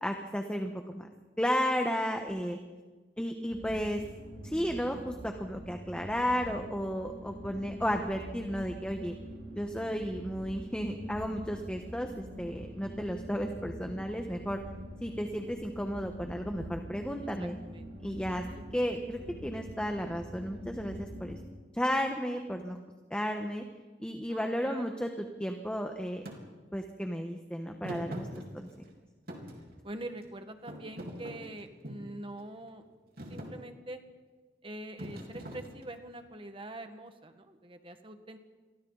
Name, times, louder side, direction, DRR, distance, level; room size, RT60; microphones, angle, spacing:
voice 1, 0.0-1.1 1.4-2.6 3.2-4.0 4.4-9.1 9.5-14.6 15.0-17.6 18.0-18.4 18.7-21.4 21.7-22.8 23.1-23.6 24.0-26.3 26.7-28.3 28.5-28.7, equal, 5° left, 4 dB, 1.2 m, -33 dB
sound 1, 3.5-21.4, equal, 85° right, 6.7 m, -45 dB
voice 2, 17.4-17.9 18.3-18.6 24.3-25.0 29.8-32.8 33.3-34.0 34.6-38.4, right 1 dB, 30° right, 7 dB, 1.6 m, -44 dB
Thump thud, 26.3-26.4 27.8-28.9 29.3-30.3 30.7-32.1 32.7-32.9 33.2-33.6 35.0-36.1, equal, 60° right, 3.7 m, -42 dB
29.0 x 23.5 x 4.1 m, 1.4 s
head